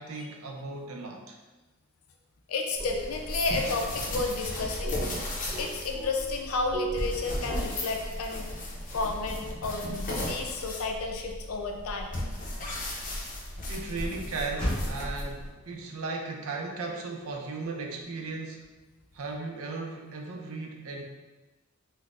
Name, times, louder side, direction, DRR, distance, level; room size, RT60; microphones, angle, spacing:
voice 1, 0.0-1.4 13.7-18.7 19.1-21.0, right 3 dB, 80° right, 2 dB, 0.5 m, -36 dB
voice 2, 2.5-5.0 5.6-8.5 8.9-12.2, left 3 dB, 85° left, 2 dB, 0.5 m, -32 dB
sound 1, 2.6-3.2 3.6-4.0 4.8-6.3 6.7-7.2, right 3 dB, 20° right, 0.4 m, -38 dB
sound 2, 2.8-15.5, left 1 dB, 40° left, 0.6 m, -35 dB
Motor vehicle (road), 14.5-19.1, equal, 5° left, 1.0 m, -41 dB
4.0 x 2.1 x 2.4 m, 1.2 s
head